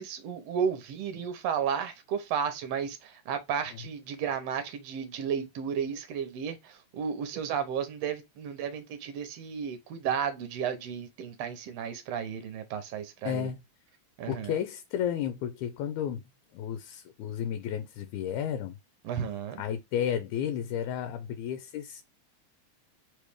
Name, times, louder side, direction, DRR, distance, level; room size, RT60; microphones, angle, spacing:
voice 1, 0.0-13.5 14.2-14.5 19.0-19.6, right 7 dB, 70° right, 1.8 m, -33 dB
voice 2, 13.3-13.6 14.3-16.2 16.5-18.8 19.6-22.0, left 9 dB, 90° left, 2.0 m, -32 dB
4.6 x 3.1 x 3.4 m
omnidirectional pair, 3.3 m